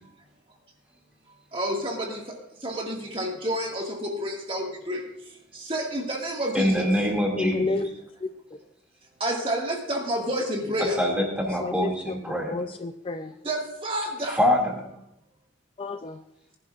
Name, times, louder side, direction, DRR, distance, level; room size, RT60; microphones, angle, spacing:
voice 1, 1.5-2.2 2.6-5.0 5.5-6.9 9.2-11.0 13.4-14.4, equal, 30° right, 0 dB, 1.8 m, -29 dB
voice 2, 6.5-7.9 11.0-12.5 14.4-14.9, equal, 5° right, 0 dB, 2.3 m, -24 dB
voice 3, 7.4-7.9 8.2-8.3 11.6-13.3 15.8-16.2, left 3 dB, 30° left, 8 dB, 0.3 m, -30 dB
19.5 x 11.0 x 2.4 m, 0.80 s
head